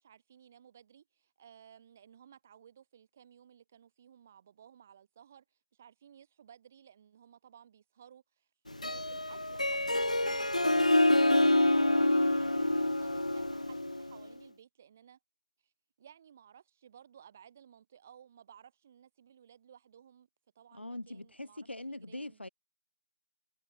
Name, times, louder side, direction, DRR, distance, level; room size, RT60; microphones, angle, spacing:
voice 1, 0.0-8.5 8.8-15.2 15.6-15.7 16.0-20.3 20.5-22.4, right 9 dB, 10° right, 5.9 m, -58 dB
Harp, 8.7-14.2, left 1 dB, 30° left, 0.5 m, -27 dB
voice 2, 20.7-22.5, left 1 dB, 50° left, 2.5 m, -42 dB
figure-of-eight pair, 175°, 7 cm